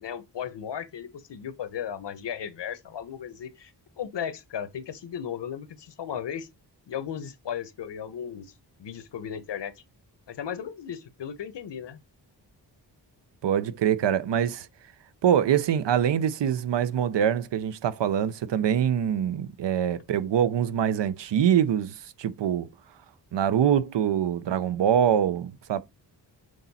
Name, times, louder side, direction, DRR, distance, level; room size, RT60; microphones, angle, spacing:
voice 1, 0.0-3.7 4.0-6.5 6.9-8.5 8.8-9.7 10.3-12.0, left 8 dB, 75° left, 1.1 m, -35 dB
voice 2, 13.4-14.7 15.2-22.7 23.3-25.8, right 9 dB, 80° right, 0.7 m, -24 dB
6.6 x 4.2 x 4.2 m
wide cardioid pair, 90°, 42 cm